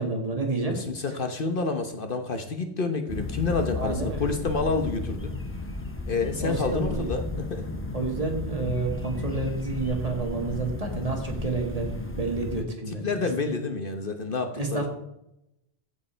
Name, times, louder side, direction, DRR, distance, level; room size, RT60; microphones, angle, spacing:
voice 1, 0.0-0.8 3.8-4.2 6.3-7.1 7.9-13.3 14.6-14.9, right 3 dB, 35° right, 2 dB, 1.8 m, -29 dB
voice 2, 0.7-5.3 6.1-7.7 12.9-14.9, left 4 dB, 55° left, 6 dB, 1.2 m, -29 dB
sound 1, 3.1-12.6, left 2 dB, 15° left, 0.7 m, -34 dB
14.5 x 5.2 x 4.5 m, 0.83 s
omnidirectional pair, 1.1 m